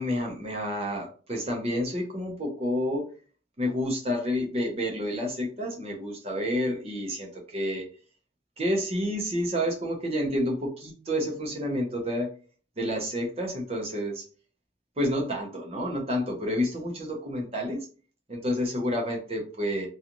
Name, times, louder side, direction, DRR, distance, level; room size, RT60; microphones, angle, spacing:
voice 1, 0.0-3.1 3.6-7.9 8.6-12.3 12.8-14.2 15.0-17.8 18.3-19.9, equal, 30° right, 1 dB, 0.6 m, -29 dB
2.5 x 2.3 x 2.8 m, 0.39 s
head